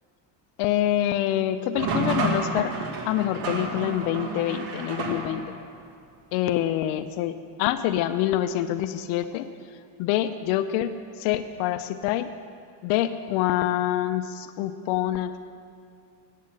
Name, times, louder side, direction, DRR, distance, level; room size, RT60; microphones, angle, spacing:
voice 1, 0.6-2.7 3.1-5.4 6.3-9.5 10.0-12.3 12.8-15.4, left 12 dB, 70° left, 11 dB, 0.6 m, -26 dB
sound 1, 1.7-5.7, right 3 dB, 70° right, 1.7 m, -30 dB
9.2 x 8.4 x 7.6 m, 2.3 s
cardioid pair, 140°, 48 cm